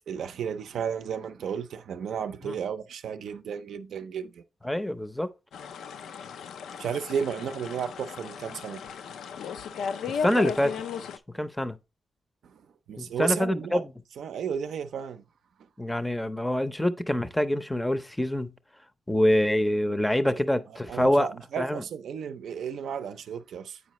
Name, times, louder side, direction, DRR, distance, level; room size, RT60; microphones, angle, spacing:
voice 1, 0.1-4.4 6.8-8.8 12.4-12.6 12.9-13.8 14.2-15.2 20.9-23.8, right 7 dB, 80° right, 0.5 m, -33 dB
voice 2, 4.6-5.3 10.1-10.8 11.3-11.8 13.0-13.8 15.8-18.5 19.1-21.3 21.6-21.8, left 1 dB, 10° left, 0.5 m, -25 dB
sound 1, 5.5-11.2, left 6 dB, 85° left, 0.4 m, -36 dB
8.3 x 4.7 x 3.0 m
cardioid pair, 95°, 0 cm